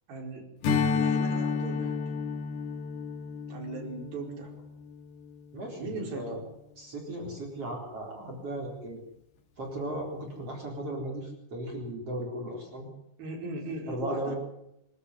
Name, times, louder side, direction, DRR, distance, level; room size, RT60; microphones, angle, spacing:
voice 1, 0.1-0.5 0.9-2.0 3.5-4.5 5.8-6.4 13.2-14.4, right 3 dB, 60° right, 1 dB, 6.4 m, -38 dB
Strum, 0.6-5.4, left 5 dB, 75° left, 4.6 m, -31 dB
voice 2, 5.5-6.4 6.8-9.0 9.6-12.9 13.9-14.4, right 1 dB, 35° right, 1 dB, 4.8 m, -36 dB
25.5 x 13.0 x 9.7 m, 0.83 s
omnidirectional pair, 4.9 m